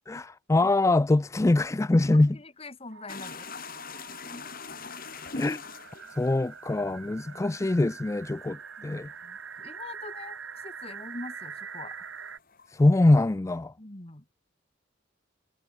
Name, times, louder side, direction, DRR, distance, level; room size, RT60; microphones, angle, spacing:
voice 1, 0.1-2.4 5.4-5.6 6.2-9.1 12.7-13.7, left 2 dB, 15° left, 0.3 m, -23 dB
voice 2, 2.1-3.5 4.2-4.4 7.3-7.4 8.8-10.4 10.6-12.1 13.8-14.3, left 2 dB, 30° left, 2.0 m, -44 dB
sound 1, 2.9-12.4, right 6 dB, 80° right, 4.9 m, -44 dB
sound 2, 3.1-11.6 11.9-13.3, left 4 dB, 50° left, 4.5 m, -44 dB
head